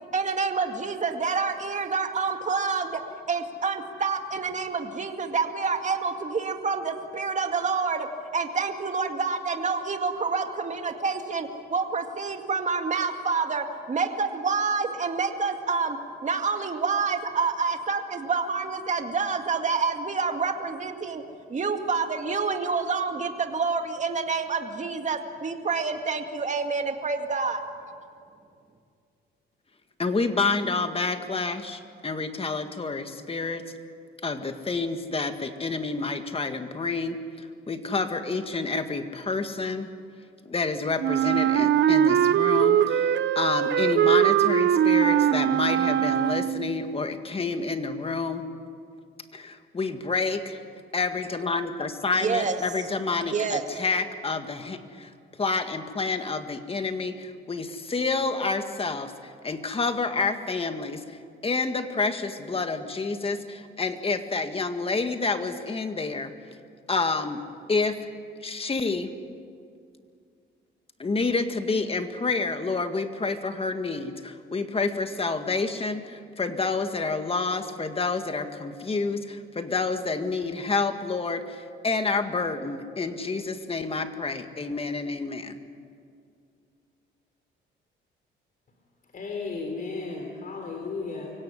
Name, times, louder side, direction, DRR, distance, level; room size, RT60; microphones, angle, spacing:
voice 1, 0.1-3.0 3.3-8.1 8.3-21.2 21.5-27.6 52.1-52.6 53.3-53.6, right 4 dB, 35° right, 5 dB, 2.1 m, -28 dB
voice 2, 30.0-33.7 34.2-39.9 40.5-48.4 49.3-50.6 50.9-55.1 55.4-61.2 61.4-66.3 66.9-67.4 67.7-68.0 68.4-69.1 71.0-85.6, left 4 dB, 30° left, 7 dB, 1.9 m, -28 dB
Wind instrument woodwind instrument, 41.0-46.8, right 10 dB, 65° right, 0.9 m, -21 dB
voice 3, 89.1-91.3, left 4 dB, 45° left, 2 dB, 3.6 m, -34 dB
24.0 x 17.0 x 9.8 m, 2.3 s
cardioid pair, 90°, 20 cm